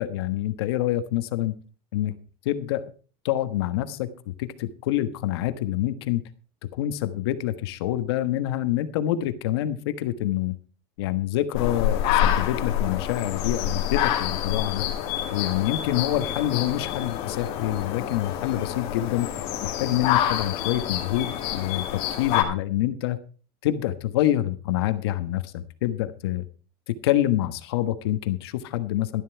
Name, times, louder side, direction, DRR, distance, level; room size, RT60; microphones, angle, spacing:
voice 1, 0.0-1.5 1.9-2.1 2.4-2.8 3.2-6.2 6.7-10.5 11.0-14.9 15.3-19.3 19.6-23.2 23.6-26.4 27.0-29.2, left 13 dB, 85° left, 11 dB, 1.3 m, -26 dB
sound 1, 11.5-22.4, left 11 dB, 50° left, 2.4 m, -27 dB
12.5 x 11.5 x 4.6 m, 0.37 s
supercardioid pair, 160°, 13 cm